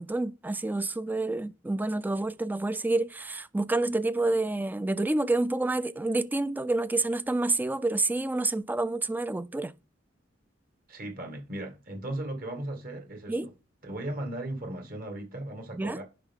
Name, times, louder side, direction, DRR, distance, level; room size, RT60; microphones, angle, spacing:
voice 1, 0.0-9.7 13.3-13.5 15.8-16.0, right 2 dB, 10° right, 0.3 m, -28 dB
voice 2, 10.9-13.5 13.8-16.0, right 1 dB, 50° right, 2.2 m, -37 dB
10.5 x 5.4 x 3.7 m
head